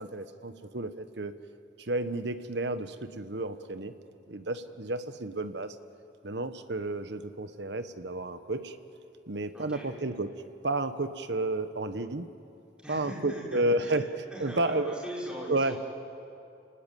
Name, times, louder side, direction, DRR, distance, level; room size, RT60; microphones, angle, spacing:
voice 1, 0.0-1.3 1.8-3.9 4.3-5.8 6.2-8.8 9.3-10.3 10.6-12.3 12.9-14.1 14.4-15.0 15.5-15.8, right 2 dB, 65° right, 10 dB, 1.2 m, -31 dB
voice 2, 9.5-9.9 12.8-14.0 14.3-15.8, equal, 5° right, -5 dB, 5.9 m, -40 dB
29.5 x 18.5 x 9.2 m, 2.7 s
head